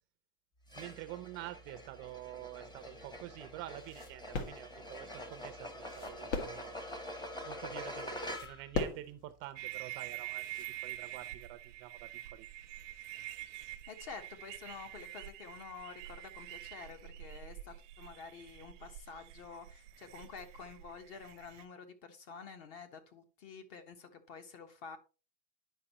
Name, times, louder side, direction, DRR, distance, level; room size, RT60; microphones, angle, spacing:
sound 1, 0.7-8.8, left 1 dB, 10° left, 0.9 m, -45 dB
voice 1, 0.7-6.8 7.5-12.5, right 15 dB, 35° right, 0.5 m, -47 dB
sound 2, 2.5-10.8, left 3 dB, 70° left, 1.6 m, -43 dB
sound 3, 9.6-21.6, right 15 dB, 85° right, 0.7 m, -46 dB
voice 2, 13.9-25.0, left 5 dB, 45° left, 1.3 m, -49 dB
9.9 x 5.5 x 3.0 m
supercardioid pair, 145°, 35 cm